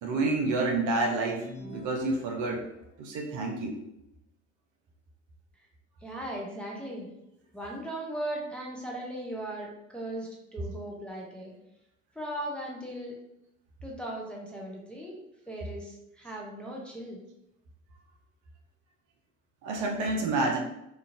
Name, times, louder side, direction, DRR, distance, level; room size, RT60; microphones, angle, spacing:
voice 1, 0.0-2.7 3.0-3.7 19.6-20.6, right 3 dB, 45° right, 2 dB, 0.7 m, -29 dB
sound 1, 1.4-3.0, left 3 dB, 65° left, 0.9 m, -45 dB
voice 2, 6.0-7.1 7.5-11.5 12.2-13.1 13.8-15.2 15.5-17.2, right 1 dB, 5° left, -2 dB, 0.6 m, -38 dB
2.9 x 2.4 x 2.5 m, 0.82 s
figure-of-eight pair, 60°, 40 cm